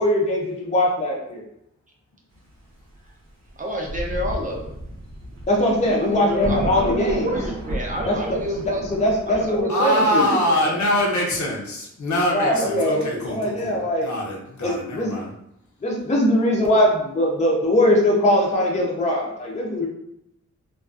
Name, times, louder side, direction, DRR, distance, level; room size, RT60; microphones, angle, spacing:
voice 1, 0.0-1.4 5.5-7.3 8.1-8.2 8.9-10.4 12.3-14.1 14.6-15.2 15.8-19.9, left 1 dB, 25° left, -2 dB, 0.5 m, -21 dB
Thunder, 3.5-3.6 3.8-9.6, right 1 dB, 70° right, 0.7 m, -32 dB
voice 2, 3.6-4.7 6.0-8.8 9.3-10.9 12.5-13.5, equal, 25° right, -1 dB, 0.5 m, -29 dB
voice 3, 9.7-15.3, equal, 75° left, -3 dB, 0.7 m, -24 dB
2.4 x 2.3 x 2.3 m, 0.77 s
wide cardioid pair, 140°, 29 cm